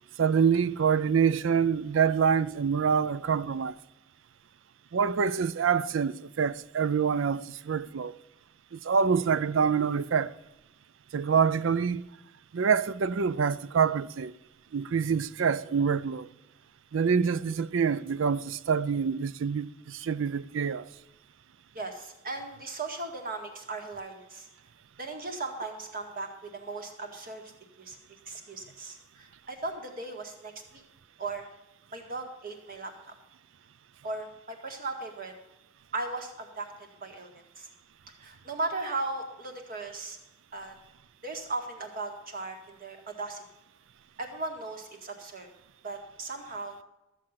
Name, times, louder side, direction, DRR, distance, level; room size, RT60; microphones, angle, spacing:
voice 1, 0.2-3.8 4.9-8.2 8.7-10.4 11.1-12.0 12.5-14.3 14.7-16.3 16.9-20.9, right 6 dB, 65° right, 0.4 m, -26 dB
voice 2, 21.7-24.5 25.0-27.5 27.8-28.0 28.3-30.8 31.2-31.4 31.9-32.9 34.0-35.3 35.9-36.7 37.0-37.7 38.2-40.2 40.5-40.7 41.2-43.4 44.2-45.5 45.8-46.8, right 3 dB, 45° right, 1.9 m, -37 dB
13.5 x 7.6 x 5.7 m
head